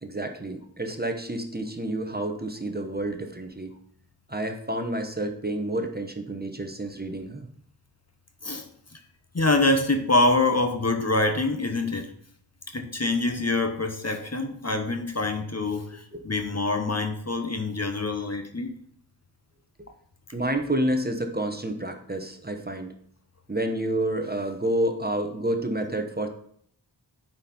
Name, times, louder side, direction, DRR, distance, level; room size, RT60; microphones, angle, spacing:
voice 1, 0.0-3.8 4.3-7.5 16.1-16.2 20.3-22.9 23.5-26.3, right 1 dB, 20° right, 5 dB, 0.9 m, -29 dB
voice 2, 9.3-12.1 12.7-18.7, left 2 dB, 35° left, 5 dB, 0.9 m, -25 dB
8.6 x 4.3 x 4.3 m, 0.64 s
wide cardioid pair, 55°, 44 cm